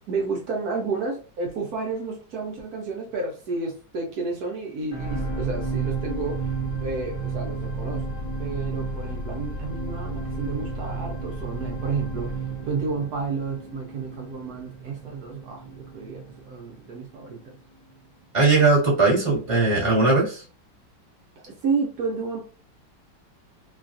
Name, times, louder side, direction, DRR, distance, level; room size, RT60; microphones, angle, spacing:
voice 1, 0.1-17.6 21.4-22.4, right 4 dB, 70° right, 0 dB, 0.9 m, -31 dB
sound 1, 4.9-17.3 17.9-18.0, right 3 dB, 35° left, 0.9 m, -32 dB
voice 2, 18.3-20.4, right 3 dB, 20° right, -4 dB, 0.9 m, -19 dB
3.1 x 2.3 x 2.5 m, 0.37 s
omnidirectional pair, 2.2 m